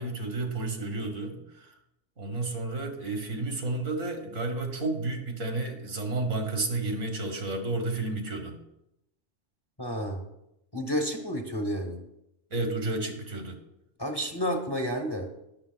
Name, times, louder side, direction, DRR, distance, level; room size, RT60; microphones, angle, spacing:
voice 1, 0.0-1.7 2.2-8.6 12.5-13.6, right 2 dB, 80° right, 4 dB, 1.7 m, -31 dB
voice 2, 9.8-10.2 10.7-12.0 14.0-15.3, equal, 25° left, 3 dB, 0.9 m, -30 dB
19.0 x 7.0 x 2.2 m, 0.84 s
omnidirectional pair, 1.3 m